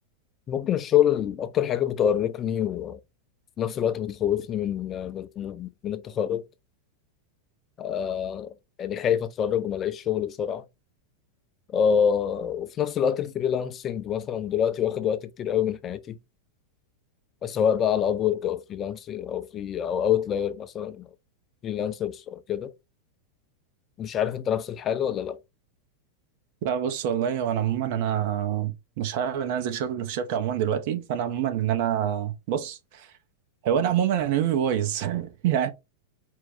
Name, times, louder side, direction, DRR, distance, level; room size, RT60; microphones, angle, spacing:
voice 1, 0.5-3.0 3.6-6.4 7.8-8.5 8.8-10.6 11.7-16.2 17.4-21.1 21.6-22.7 24.0-25.4, left 9 dB, 30° left, 0.5 m, -26 dB
voice 2, 26.6-33.1 33.6-35.7, right 9 dB, 55° right, 0.7 m, -26 dB
4.6 x 2.2 x 3.5 m
figure-of-eight pair, 90°, 0 cm